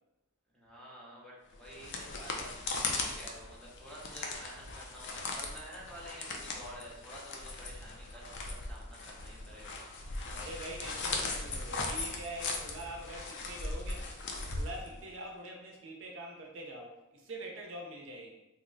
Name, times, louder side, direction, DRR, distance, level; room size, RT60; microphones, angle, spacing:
voice 1, 0.5-9.8 14.7-14.8, equal, 5° left, -5 dB, 0.7 m, -50 dB
sound 1, 1.5-15.2, left 3 dB, 55° left, 0.4 m, -39 dB
voice 2, 10.3-14.2 14.6-18.4, right 1 dB, 60° right, -1 dB, 0.6 m, -44 dB
2.8 x 2.1 x 3.7 m, 0.97 s
head